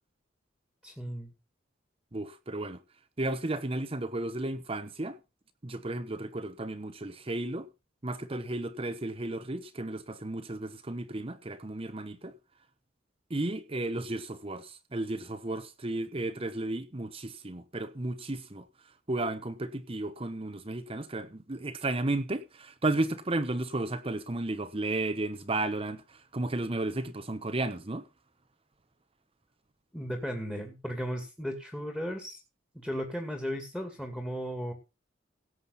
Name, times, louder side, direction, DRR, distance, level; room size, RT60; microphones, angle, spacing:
voice 1, 0.8-1.3 29.9-32.4 32.7-34.7, equal, 5° left, 2.3 m, -35 dB
voice 2, 2.1-2.8 3.2-5.2 5.6-7.7 8.0-12.4 13.3-18.7 19.1-28.1, right 2 dB, 30° right, 0.9 m, -33 dB
17.0 x 7.6 x 4.1 m
head